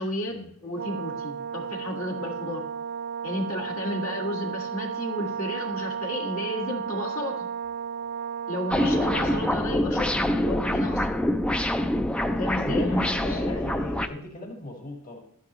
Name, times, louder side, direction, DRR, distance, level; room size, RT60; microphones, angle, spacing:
voice 1, 0.0-0.4 0.6-2.6 3.2-7.5 8.5-11.1 12.4-13.6, left 1 dB, 70° left, 1 dB, 1.8 m, -32 dB
Brass instrument, 0.7-9.6, right 7 dB, 45° right, 0.5 m, -33 dB
sound 1, 8.7-14.1, left 1 dB, 5° left, 0.4 m, -25 dB
voice 2, 12.6-15.2, left 1 dB, 40° left, 1 dB, 1.5 m, -38 dB
12.0 x 9.7 x 3.0 m, 0.70 s
head